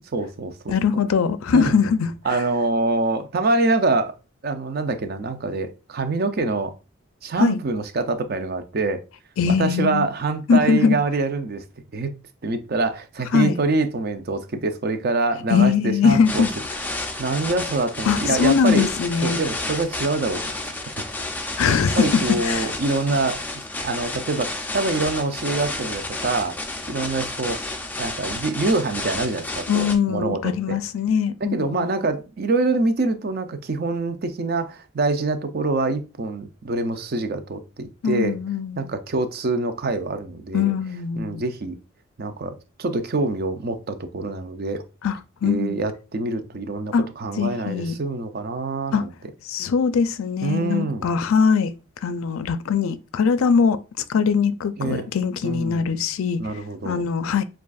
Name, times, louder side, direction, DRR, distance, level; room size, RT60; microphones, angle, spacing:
voice 1, 0.1-0.7 1.5-1.8 2.2-4.1 4.4-6.7 7.2-9.0 9.5-11.6 11.9-12.1 12.4-16.4 17.2-18.9 19.2-20.7 21.4-21.6 21.9-26.6 26.9-27.6 28.0-30.8 31.4-38.4 38.8-40.7 41.2-41.8 42.2-44.8 45.4-49.1 50.4-51.1 54.8-55.1 55.4-55.9 56.4-57.0, right 3 dB, 45° right, 0.5 m, -25 dB
voice 2, 0.7-2.1 7.4-7.6 9.4-10.1 10.5-11.0 13.3-13.5 15.5-16.5 18.1-19.4 21.6-22.7 29.7-31.9 38.0-38.9 40.5-41.5 45.0-45.8 46.9-47.0 47.4-47.9 48.9-49.0 49.5-51.7 52.0-53.8 54.1-56.4 56.8-57.4, left 6 dB, 80° left, 0.4 m, -21 dB
sound 1, 16.2-29.9, left 2 dB, 10° left, 0.4 m, -31 dB
7.2 x 2.4 x 2.4 m
head